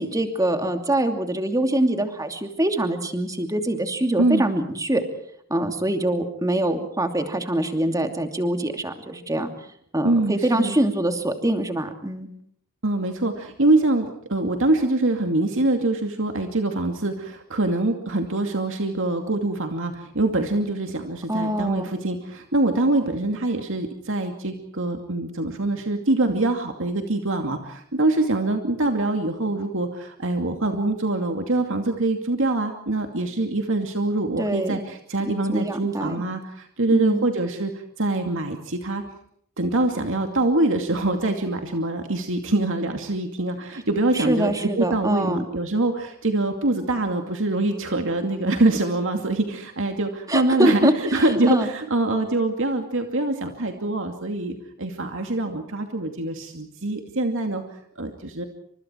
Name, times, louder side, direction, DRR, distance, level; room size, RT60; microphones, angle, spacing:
voice 1, 0.0-5.0 5.5-9.5 9.9-12.3 21.3-21.9 34.4-34.8 35.3-36.2 36.9-37.3 44.1-45.4 50.3-51.7, right 1 dB, 15° right, 6 dB, 2.7 m, -24 dB
voice 2, 10.0-10.7 12.8-37.7 38.0-39.0 39.6-57.6 58.0-58.4, right 2 dB, 60° right, 4 dB, 2.5 m, -24 dB
29.5 x 26.5 x 4.6 m, 0.66 s
head